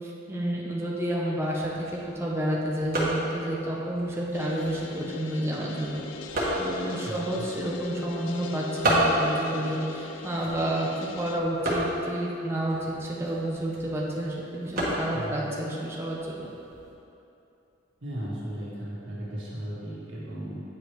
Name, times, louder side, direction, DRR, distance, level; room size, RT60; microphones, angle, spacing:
voice 1, 0.0-6.0 6.6-16.5, right 1 dB, 15° right, -5 dB, 0.7 m, -30 dB
sound 1, 1.4-16.9, right 1 dB, 50° right, 1.4 m, -33 dB
sound 2, 4.3-11.4, left 5 dB, 85° left, 0.4 m, -40 dB
voice 2, 7.0-7.5 15.1-15.4 18.0-20.6, right 1 dB, 75° right, -7 dB, 1.5 m, -36 dB
8.8 x 4.9 x 3.1 m, 2.8 s
head